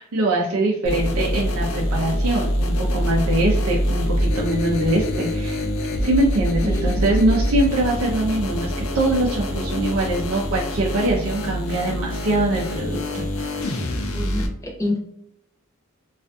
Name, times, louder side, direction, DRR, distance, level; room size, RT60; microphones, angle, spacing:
voice 1, 0.0-5.6 6.0-13.8, right 1 dB, 80° right, -2 dB, 0.5 m, -23 dB
sound 1, 0.8-14.5, equal, 80° left, 0.4 m, -25 dB
voice 2, 6.6-7.0 14.1-15.0, left 2 dB, 15° left, -2 dB, 0.6 m, -27 dB
2.5 x 2.4 x 2.3 m, 0.72 s
head